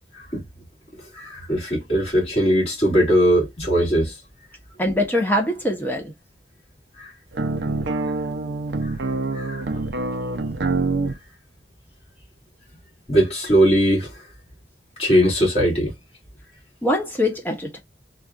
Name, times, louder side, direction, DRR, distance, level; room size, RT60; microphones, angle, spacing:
voice 1, 1.1-4.1 7.0-7.1 9.3-9.6 13.1-14.1 15.0-15.9, equal, 35° left, 2.4 m, -19 dB
voice 2, 4.8-6.1 16.8-17.8, left 1 dB, 10° left, 0.8 m, -23 dB
sound 1, 7.3-11.2, right 3 dB, 80° right, 0.6 m, -25 dB
4.1 x 2.4 x 2.4 m
head